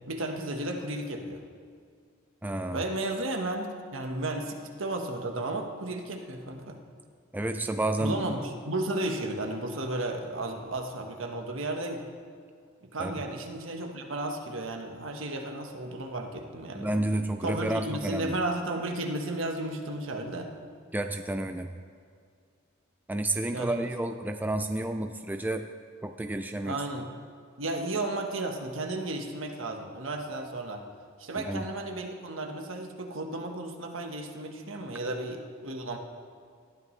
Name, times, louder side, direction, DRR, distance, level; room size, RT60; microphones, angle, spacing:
voice 1, 0.1-1.4 2.7-6.8 8.0-12.0 12.8-16.9 17.4-20.5 23.5-23.9 26.6-27.1 27.6-30.8 31.2-36.0, right 2 dB, 70° right, 3 dB, 1.4 m, -33 dB
voice 2, 2.4-2.9 7.3-8.3 13.0-13.2 16.7-18.3 20.9-21.7 23.1-25.7 26.0-26.8 31.4-31.7 35.0-35.1, right 1 dB, 10° right, 6 dB, 0.4 m, -31 dB
18.5 x 12.5 x 3.3 m, 2.2 s
head